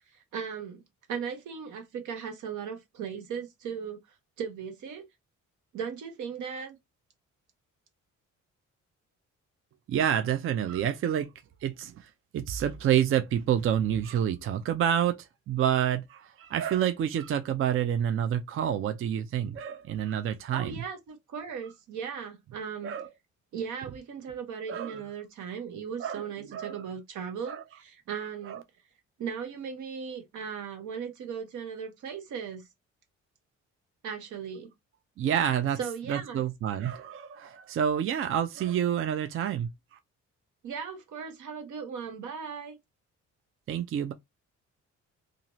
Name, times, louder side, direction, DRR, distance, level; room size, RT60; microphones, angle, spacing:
voice 1, 0.1-0.8 1.1-4.0 4.4-5.1 5.7-6.8 20.5-23.0 23.5-28.6 29.2-32.7 34.0-34.7 35.8-36.4 40.6-42.8, right 7 dB, 80° right, 1.0 m, -37 dB
voice 2, 9.9-11.3 11.6-20.8 22.8-23.1 24.7-25.0 26.0-26.2 26.5-26.8 27.4-27.6 28.5-28.6 35.2-35.8 36.1-40.0 43.7-44.1, right 9 dB, 45° right, 0.4 m, -28 dB
2.6 x 2.5 x 2.9 m
cardioid pair, 90°, 30 cm